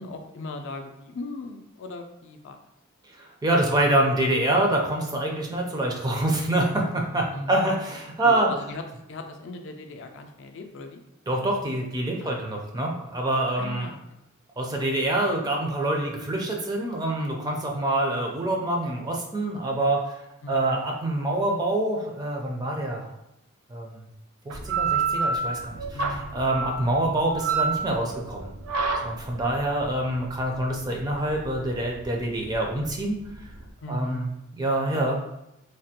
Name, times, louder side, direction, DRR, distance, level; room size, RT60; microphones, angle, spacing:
voice 1, 0.0-2.6 7.3-7.6 8.2-8.8 9.1-11.0 12.2-12.4 13.6-14.0 20.4-20.7 25.9-26.4 29.4-29.6 33.8-34.3, left 2 dB, 60° left, 5 dB, 0.3 m, -38 dB
voice 2, 3.1-8.5 11.3-13.9 14.6-23.1 23.7-24.1 24.4-28.5 29.0-33.5 33.9-35.2, right 1 dB, 20° right, 0 dB, 0.4 m, -26 dB
sound 1, 24.5-33.7, right 4 dB, 85° right, 0.4 m, -29 dB
3.3 x 2.2 x 2.8 m, 0.86 s
head